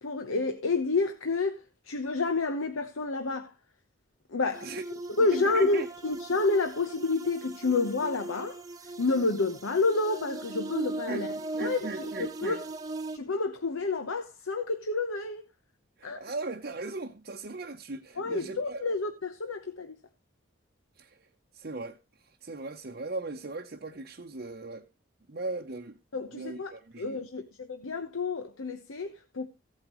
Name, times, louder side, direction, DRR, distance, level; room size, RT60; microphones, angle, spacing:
voice 1, 0.0-1.6 1.9-3.5 4.3-4.7 5.2-8.6 9.0-11.3 11.6-12.6 13.1-15.4 16.0-16.2 18.2-20.0 26.1-29.5, left 3 dB, 85° left, 1.0 m, -29 dB
sound 1, 4.5-13.2, right 2 dB, 15° right, 0.9 m, -38 dB
voice 2, 5.3-5.9 11.1-12.6 16.0-18.8 21.0-21.3 21.5-22.0 22.3-24.9 25.3-26.0 26.3-27.2, right 3 dB, 50° right, 0.8 m, -38 dB
16.0 x 8.8 x 3.1 m
head